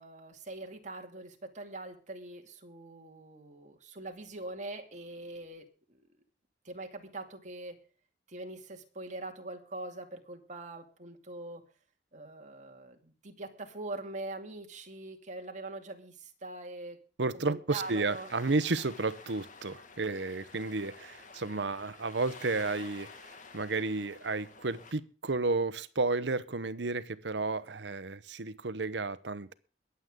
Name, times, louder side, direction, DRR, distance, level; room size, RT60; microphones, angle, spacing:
voice 1, 0.0-6.0 6.6-7.8 8.3-11.6 12.1-17.0 17.3-18.3, right 2 dB, 45° right, 4 dB, 2.4 m, -43 dB
voice 2, 17.2-29.5, right 3 dB, 70° right, 16 dB, 0.9 m, -32 dB
sound 1, 17.7-24.9, left 4 dB, 45° left, 2.0 m, -51 dB
22.5 x 8.1 x 3.7 m, 0.39 s
head